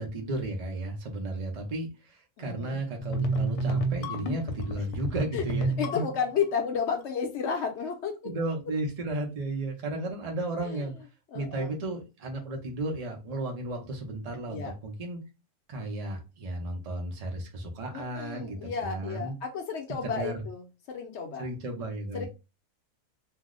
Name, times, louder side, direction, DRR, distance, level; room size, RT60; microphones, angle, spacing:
voice 1, 0.0-5.7 8.2-10.9 11.3-15.2 15.7-19.3 20.0-20.4 21.4-22.3, right 2 dB, 80° right, 1 dB, 0.3 m, -34 dB
voice 2, 2.4-2.8 5.3-5.4 5.8-8.2 10.6-10.9 11.3-11.8 14.5-14.7 17.9-21.4 22.1-22.3, left 6 dB, 60° left, 4 dB, 0.7 m, -32 dB
sound 1, 3.0-6.4, right 2 dB, 90° left, 1.1 m, -30 dB
2.7 x 2.0 x 3.6 m, 0.28 s
omnidirectional pair, 1.6 m